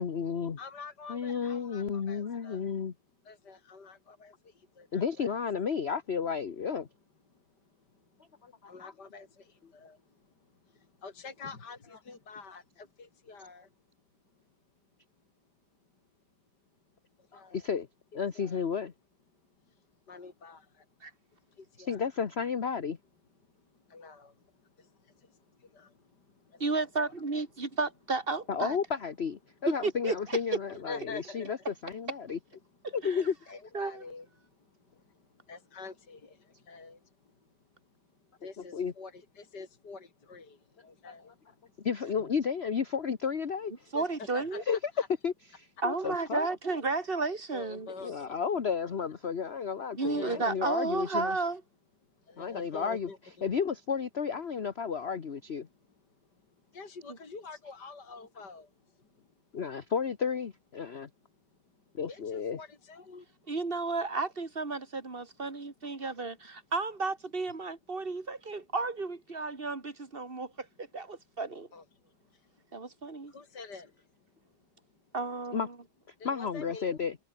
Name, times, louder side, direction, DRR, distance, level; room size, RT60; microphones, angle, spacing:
voice 1, 0.0-0.6 1.1-2.9 4.9-6.9 8.4-8.9 17.3-17.9 18.1-18.9 21.9-23.0 28.5-32.4 32.9-33.3 38.7-38.9 41.2-41.3 41.8-43.7 44.5-44.8 45.2-46.5 48.0-51.4 52.4-53.1 53.4-55.7 59.5-61.1 61.9-62.6 75.5-75.7 76.2-77.2, left 6 dB, 40° left, 1.2 m, -32 dB
voice 2, 0.6-2.6 3.3-4.3 4.8-5.4 8.7-9.3 9.7-10.0 11.0-12.6 13.0-13.7 17.3-17.7 18.3-18.6 20.1-20.6 21.8-22.1 23.9-24.3 25.8-25.9 26.7-27.1 30.7-31.6 33.1-34.3 35.5-36.3 36.7-37.0 38.4-40.6 40.8-41.3 43.9-45.1 47.5-48.3 50.0-50.7 52.3-53.2 56.7-58.7 62.1-63.2 71.7-71.8 73.3-73.9 76.2-77.0, left 4 dB, 55° left, 4.1 m, -46 dB
voice 3, 26.6-28.8 29.7-30.4 33.0-33.2 33.7-34.0 43.9-44.6 45.8-47.9 50.0-51.6 63.5-71.7 72.7-73.3 75.1-75.7, right 3 dB, 25° right, 2.9 m, -33 dB
omnidirectional pair, 2.2 m